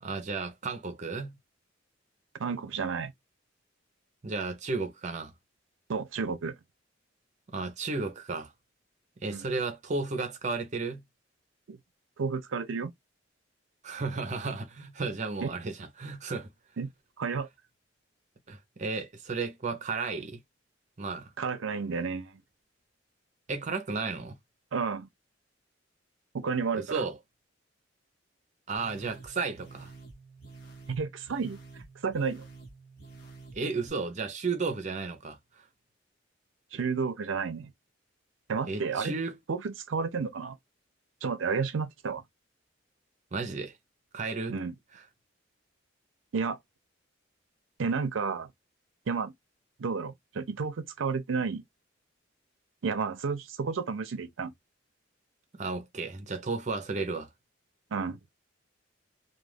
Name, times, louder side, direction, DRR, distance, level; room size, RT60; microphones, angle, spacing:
voice 1, 0.0-1.4 4.2-5.3 7.5-8.5 9.2-11.0 13.8-16.5 18.5-20.4 21.0-21.3 23.5-24.4 26.7-27.2 28.7-29.9 33.5-35.6 38.7-39.4 43.3-43.7 44.1-44.6 44.9-45.0 55.6-57.3, right 4 dB, 40° right, 0.6 m, -33 dB
voice 2, 2.4-3.1 5.9-6.5 9.3-9.5 11.7-11.8 12.2-12.9 15.4-15.5 16.8-16.9 17.2-17.5 21.4-22.4 24.7-25.1 26.3-27.0 30.9-31.6 32.0-32.4 36.7-37.7 38.5-39.1 39.5-40.6 41.2-42.2 44.5-44.7 46.3-46.6 47.8-48.5 49.1-49.3 49.8-51.6 52.8-54.5 57.9-58.2, right 5 dB, 80° right, 0.5 m, -31 dB
sound 1, 28.8-33.9, right 3 dB, 55° left, 1.0 m, -49 dB
2.3 x 2.3 x 3.2 m
head